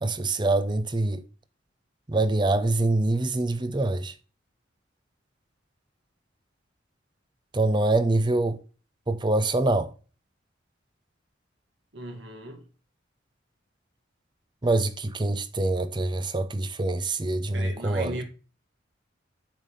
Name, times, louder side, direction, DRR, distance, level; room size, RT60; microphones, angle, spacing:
voice 1, 0.0-1.3 2.1-4.1 7.5-8.6 9.1-9.9 14.6-18.1, right 2 dB, 25° right, 0.6 m, -25 dB
voice 2, 11.9-12.7 17.5-18.2, right 1 dB, 65° right, 2.0 m, -37 dB
7.3 x 4.0 x 5.1 m
head